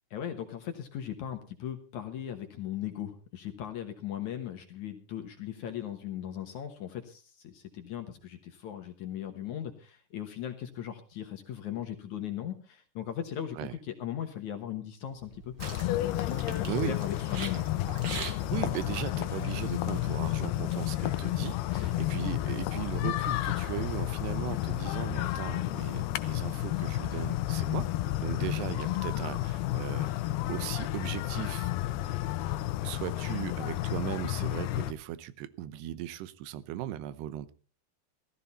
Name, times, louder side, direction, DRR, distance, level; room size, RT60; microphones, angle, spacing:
voice 1, 0.1-15.5 16.0-17.7 21.7-22.0, left 10 dB, 65° left, 6 dB, 2.1 m, -38 dB
sound 1, 15.1-20.2, right 5 dB, 70° right, 1.0 m, -44 dB
sound 2, 15.6-34.9, left 15 dB, 80° left, 2.8 m, -31 dB
voice 2, 16.7-17.0 18.5-27.9 28.2-30.1 30.5-31.7 32.8-37.5, right 13 dB, 85° right, 16 dB, 2.9 m, -37 dB
17.0 x 13.5 x 4.1 m, 0.37 s
omnidirectional pair, 4.6 m